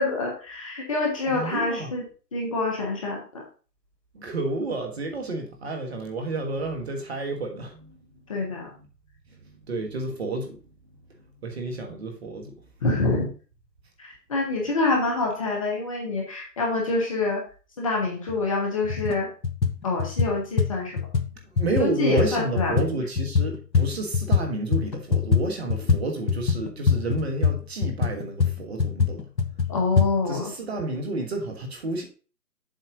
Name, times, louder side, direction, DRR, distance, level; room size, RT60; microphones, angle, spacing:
voice 1, 0.0-2.0 2.3-3.4 8.3-8.7 12.8-13.3 14.0-17.4 17.8-19.3 19.8-21.0 21.8-22.8 29.7-30.5, left 3 dB, 20° left, 1.1 m, -26 dB
voice 2, 1.2-1.9 4.1-8.9 9.3-10.6 11.4-12.5 21.5-29.3 30.3-32.0, right 2 dB, 40° right, 1.6 m, -30 dB
sound 1, 18.3-18.4 18.8-19.2 19.4-24.5 24.7-30.1, left 5 dB, 85° left, 1.3 m, -24 dB
7.5 x 4.2 x 5.2 m
figure-of-eight pair, 155°, 49 cm